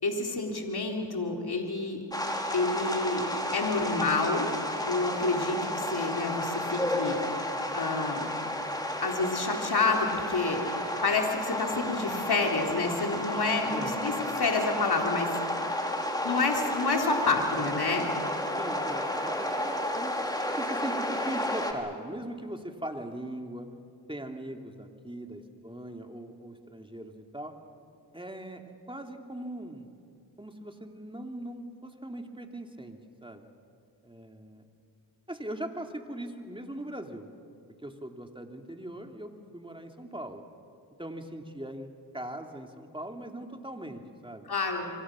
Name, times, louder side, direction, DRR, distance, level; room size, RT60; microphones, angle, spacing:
voice 1, 0.0-2.0 2.5-3.3 3.5-4.5 4.8-7.2 7.7-8.3 9.0-10.6 11.0-15.3 16.2-18.1 44.5-44.9, left 3 dB, 55° left, 1 dB, 3.9 m, -28 dB
sound 1, 2.1-21.7, left 1 dB, 10° left, 3.4 m, -32 dB
voice 2, 18.6-23.7 24.1-27.6 28.1-29.9 30.4-33.5 34.0-34.6 35.3-37.3 37.7-40.4 41.0-41.9 42.1-44.5, right 1 dB, 10° right, 4 dB, 2.8 m, -40 dB
25.5 x 25.0 x 6.3 m, 2.3 s
cardioid pair, 45°, 46 cm